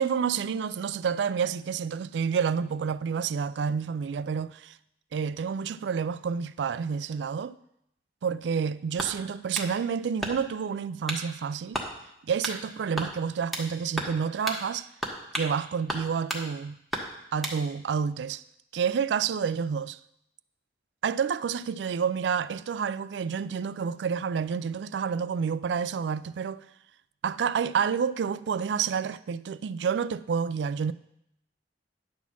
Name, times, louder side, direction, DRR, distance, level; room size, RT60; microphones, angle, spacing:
voice 1, 0.0-4.8 5.1-7.5 8.2-11.8 12.2-14.9 15.3-16.8 17.3-18.4 18.7-20.0 21.0-26.6 27.2-30.9, right 6 dB, 80° right, 0.3 m, -29 dB
sound 1, 9.0-9.7 10.2-10.6 11.1-11.3 11.7-11.9 12.4-12.6 13.0-13.7 14.0-14.2 14.5-14.6 15.0-15.5 15.9-16.5 16.9-17.6, equal, ahead, 1.1 m, -33 dB
10.5 x 4.2 x 7.2 m
head